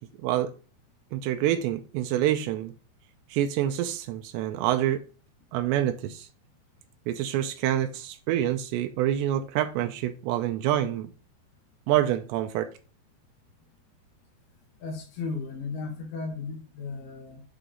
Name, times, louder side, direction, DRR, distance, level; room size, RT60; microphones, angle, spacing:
voice 1, 0.2-0.5 1.1-2.7 3.3-5.0 5.5-6.3 7.1-11.1 11.9-12.7, right 12 dB, 85° right, 2.8 m, -27 dB
voice 2, 14.8-17.4, left 4 dB, 70° left, 3.4 m, -35 dB
8.6 x 3.9 x 3.7 m
omnidirectional pair, 5.0 m